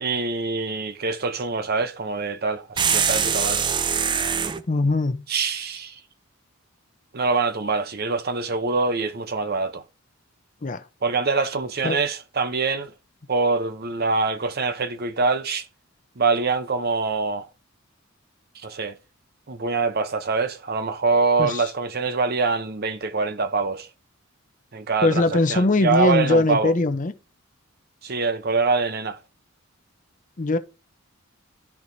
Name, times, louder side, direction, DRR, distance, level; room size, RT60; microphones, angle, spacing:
voice 1, 0.0-3.6 5.3-6.0 7.1-9.8 11.0-12.9 13.3-15.7 16.2-17.5 18.6-19.0 19.5-23.9 24.7-26.7 28.0-29.2, right 4 dB, 45° right, 0.7 m, -24 dB
sound 1, 2.8-4.6, right 7 dB, 20° right, 0.4 m, -22 dB
voice 2, 4.7-5.2 10.6-10.9 11.8-12.0 21.4-21.7 25.0-27.1 30.4-30.6, left 2 dB, 40° left, 0.6 m, -21 dB
13.5 x 4.7 x 2.7 m
head